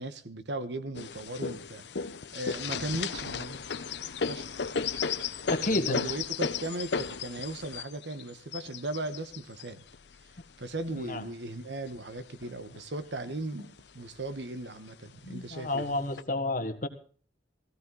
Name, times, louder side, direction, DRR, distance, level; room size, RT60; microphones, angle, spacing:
voice 1, 0.0-1.9 2.3-3.6 4.3-4.4 5.7-9.8 10.6-15.9, right 2 dB, 75° right, 1.3 m, -37 dB
sound 1, 0.9-11.2 11.9-12.8 13.2-13.3 13.6-14.3 15.1-15.2 15.8-16.2, left 6 dB, 70° left, 0.8 m, -35 dB
voice 2, 5.5-6.1 11.0-11.2 15.2-16.9, left 2 dB, 50° left, 1.5 m, -31 dB
16.0 x 15.5 x 4.0 m
head